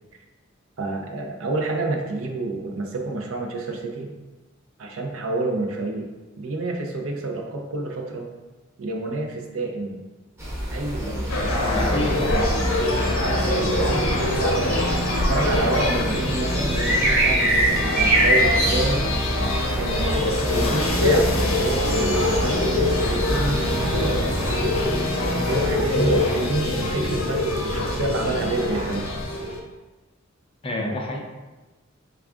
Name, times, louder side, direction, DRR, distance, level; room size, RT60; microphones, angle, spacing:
voice 1, 0.8-4.1 4.8-6.1 6.4-8.3 8.8-10.0 10.7-12.1 13.2-19.0 19.8-24.2 25.5-29.1 30.7-31.0, right 2 dB, 80° right, 2 dB, 0.5 m, -28 dB
sound 1, 10.4-24.8, right 1 dB, 15° right, 0.7 m, -26 dB
sound 2, 10.9-26.2, equal, 45° right, 1.0 m, -31 dB
sound 3, 11.3-29.6, left 1 dB, 85° left, 0.6 m, -24 dB
voice 2, 11.5-12.4 30.6-31.2, left 2 dB, 25° left, 1 dB, 0.4 m, -28 dB
3.4 x 2.4 x 3.5 m, 1.2 s
head